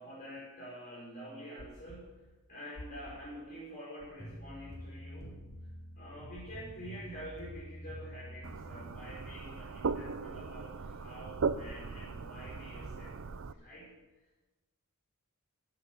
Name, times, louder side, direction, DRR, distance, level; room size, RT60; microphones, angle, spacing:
voice 1, 0.0-5.5 5.9-13.9, equal, 40° left, -8 dB, 5.1 m, -48 dB
sound 1, 1.6-2.0 2.7-3.2 4.0-4.4 5.2-5.6 6.3-6.8 7.5-7.9 8.8-9.2 10.0-10.4 11.3-11.7 12.5-12.9, left 1 dB, 70° left, 2.2 m, -51 dB
sound 2, 4.2-9.5, equal, 15° left, 3.7 m, -48 dB
sound 3, 8.4-13.5, right 4 dB, 65° right, 0.6 m, -38 dB
13.0 x 8.9 x 8.4 m, 1.2 s
head